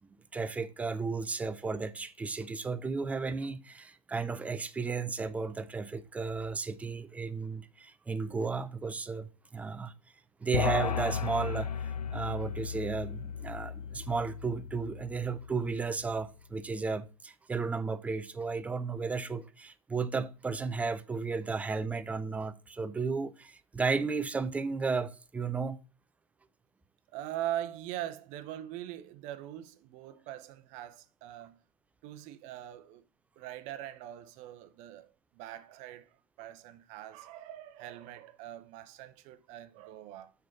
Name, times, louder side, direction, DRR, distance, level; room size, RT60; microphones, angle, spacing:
voice 1, 0.3-9.9 10.4-11.7 12.1-25.8, right 4 dB, 5° right, 0.4 m, -34 dB
sound 1, 10.5-16.0, left 7 dB, 80° left, 0.7 m, -35 dB
voice 2, 27.1-31.6 32.0-33.0 33.4-40.3, right 12 dB, 40° right, 0.7 m, -42 dB
6.2 x 4.6 x 5.8 m
figure-of-eight pair, 100°, 19 cm